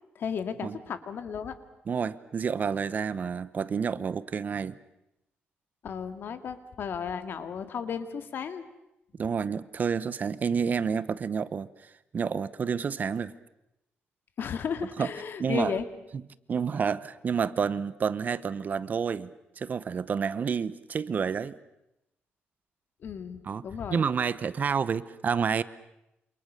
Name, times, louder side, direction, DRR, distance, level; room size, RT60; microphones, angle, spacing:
voice 1, 0.2-1.6 5.8-8.6 14.4-15.9 23.0-24.0, left 7 dB, 60° left, 9 dB, 2.2 m, -34 dB
voice 2, 1.9-4.8 9.2-13.3 15.0-15.1 15.4-15.8 16.5-21.6 23.4-23.6 23.9-25.6, right 6 dB, 45° right, 17 dB, 0.9 m, -29 dB
28.0 x 26.5 x 6.7 m, 0.87 s
cardioid pair, 125°, 4 cm